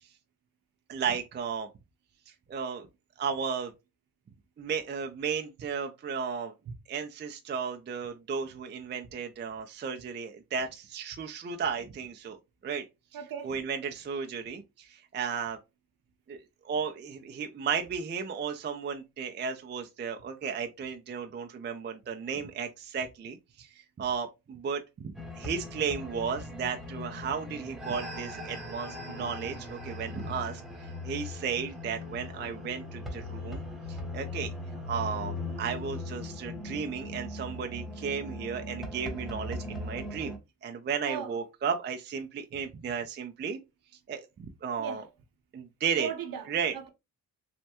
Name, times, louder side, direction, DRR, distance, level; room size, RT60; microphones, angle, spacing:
voice 1, 0.9-1.7 2.5-2.9 3.2-3.7 4.6-6.5 6.9-12.4 12.6-12.8 13.4-15.6 16.3-16.4 16.6-23.7 24.0-30.6 31.0-33.6 33.9-34.5 34.9-43.6 44.1-45.0 45.5-46.1 46.5-46.7, right 6 dB, 25° right, 0.4 m, -34 dB
voice 2, 13.1-13.5 41.1-41.3 44.8-45.1 46.0-46.9, right 8 dB, 50° right, 0.8 m, -37 dB
sound 1, 25.1-40.4, left 2 dB, ahead, 0.9 m, -39 dB
3.2 x 2.1 x 2.8 m
cardioid pair, 70°, 43 cm